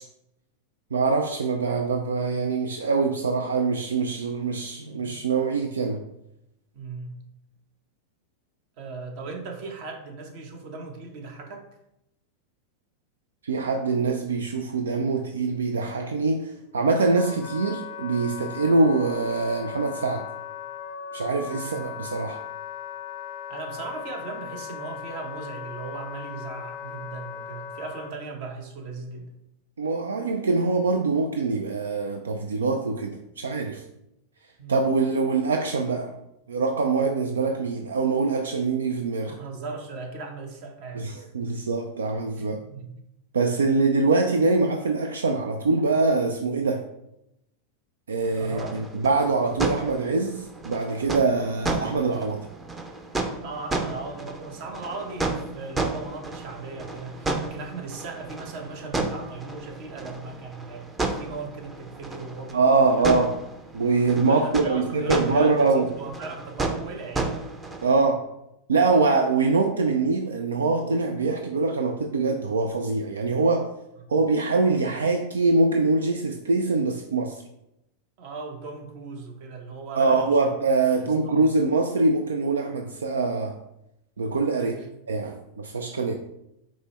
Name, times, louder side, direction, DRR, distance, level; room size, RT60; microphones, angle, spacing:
voice 1, 0.9-6.0 13.4-20.3 21.1-22.4 29.8-33.8 34.7-36.1 36.5-39.4 40.9-42.6 43.3-46.8 48.1-52.5 62.5-63.4 63.7-65.9 67.8-68.3 68.7-73.7 74.1-77.4 79.9-83.6 84.2-84.7 85.1-86.2, right 3 dB, 90° right, 5 dB, 0.3 m, -24 dB
voice 2, 6.7-7.1 8.8-11.7 21.6-21.8 23.5-29.3 34.6-34.8 39.3-41.1 42.4-42.9 48.4-48.7 53.4-63.1 64.1-67.5 74.0-74.2 78.2-80.5 80.8-81.4 84.5-84.9, right 4 dB, 55° right, 3 dB, 0.9 m, -38 dB
Wind instrument woodwind instrument, 16.5-28.1, left 8 dB, 55° left, 0.5 m, -38 dB
sound 1, 48.2-68.0, right 3 dB, 20° right, 0.6 m, -33 dB
5.3 x 2.1 x 4.2 m, 0.85 s
hypercardioid pair, 105°, 0 cm